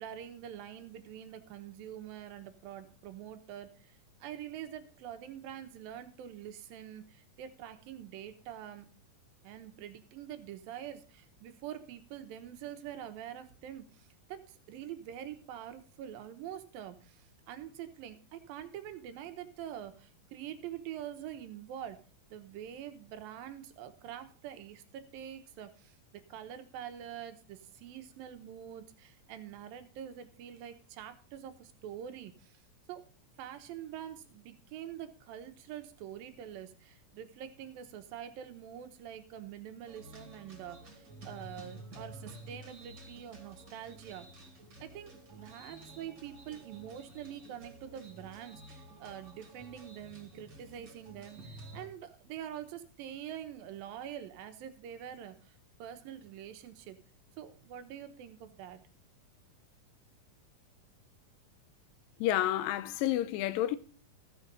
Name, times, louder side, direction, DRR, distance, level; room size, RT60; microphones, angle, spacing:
voice 1, 0.0-8.9 9.4-22.0 22.3-32.6 32.9-33.0 33.4-44.3 44.8-57.0 57.4-58.8, right 10 dB, 90° right, 2.8 m, -45 dB
sound 1, 39.9-51.9, right 2 dB, 35° right, 2.6 m, -51 dB
voice 2, 62.2-63.8, left 13 dB, 85° left, 2.4 m, -30 dB
14.5 x 6.3 x 5.3 m
omnidirectional pair, 4.0 m